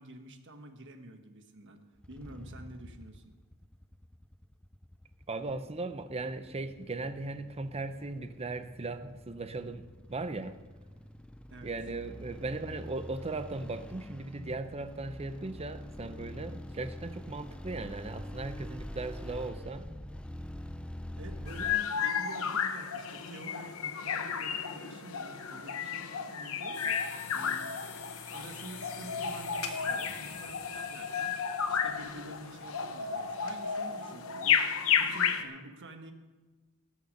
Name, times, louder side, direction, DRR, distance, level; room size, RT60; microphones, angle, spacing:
voice 1, 0.0-1.8 2.1-3.3 11.5-11.7 21.2-27.7 28.3-36.1, right 1 dB, 55° right, 6 dB, 1.3 m, -48 dB
sound 1, 2.0-21.8, left 1 dB, 5° left, 0.4 m, -45 dB
voice 2, 5.3-10.6 11.6-19.9, right 3 dB, 30° right, 11 dB, 0.7 m, -38 dB
sound 2, 21.5-35.4, left 7 dB, 65° left, 0.9 m, -32 dB
sound 3, 26.7-33.5, left 7 dB, 85° left, 1.5 m, -47 dB
18.0 x 6.7 x 6.5 m, 1.3 s
head